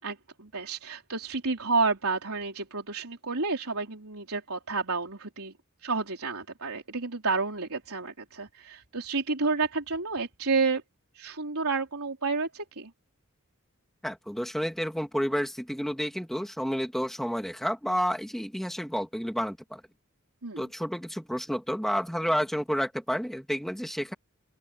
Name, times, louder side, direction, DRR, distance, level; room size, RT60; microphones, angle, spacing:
voice 1, 0.0-5.5 5.8-10.8 11.2-12.9 20.4-20.6, right 4 dB, 80° right, 3.8 m, -30 dB
voice 2, 14.0-19.8 20.6-24.1, equal, ahead, 3.1 m, -30 dB
open air
head